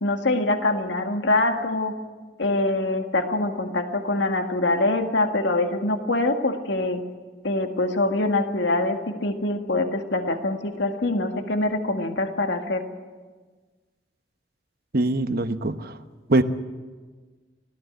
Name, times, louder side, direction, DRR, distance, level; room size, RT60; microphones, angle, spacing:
voice 1, 0.0-1.9 2.4-7.0 7.4-12.8, left 2 dB, 75° left, 5 dB, 1.9 m, -24 dB
voice 2, 14.9-16.0 16.3-16.4, right 2 dB, 55° right, 9 dB, 1.0 m, -22 dB
25.5 x 16.5 x 8.0 m, 1.4 s
head